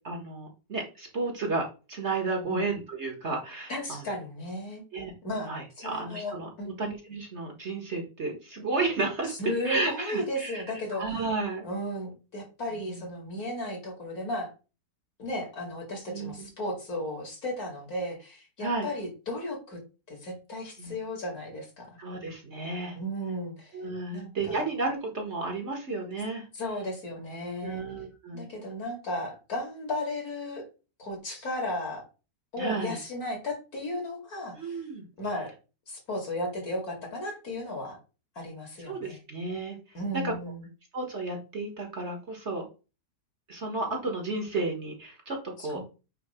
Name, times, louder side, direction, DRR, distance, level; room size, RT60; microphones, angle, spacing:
voice 1, 0.0-4.0 4.9-5.1 5.4-6.5 6.8-9.3 9.6-10.6 10.9-11.6 12.8-13.0 16.1-16.5 18.6-18.9 20.8-20.9 22.0-23.0 23.7-26.4 27.6-28.5 32.6-33.0 34.5-35.0 38.9-39.8 40.2-40.3 40.9-42.6 43.5-45.4 45.6-45.8, right 3 dB, 40° right, 2 dB, 1.6 m, -32 dB
voice 2, 3.7-4.8 5.2-5.5 5.8-6.8 9.3-11.0 11.6-14.5 15.2-19.8 20.1-21.9 23.0-23.8 24.1-24.6 26.5-27.8 28.3-30.6 31.0-32.0 32.5-34.8 35.2-35.5 35.9-38.0 38.4-39.2 39.9-40.7 45.6-45.8, left 1 dB, 55° left, 1 dB, 2.7 m, -35 dB
8.9 x 3.1 x 4.3 m, 0.32 s
omnidirectional pair, 1.9 m